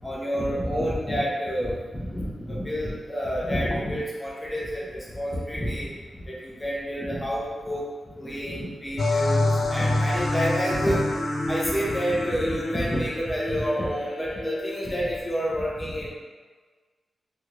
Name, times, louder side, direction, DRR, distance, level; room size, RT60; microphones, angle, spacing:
voice 1, 0.0-5.9 6.2-11.1 11.4-16.1, equal, 20° left, -6 dB, 0.7 m, -28 dB
sound 1, 9.0-15.2, left 2 dB, 70° left, 0.4 m, -27 dB
3.3 x 2.4 x 2.9 m, 1.4 s
wide cardioid pair, 90°, 0 cm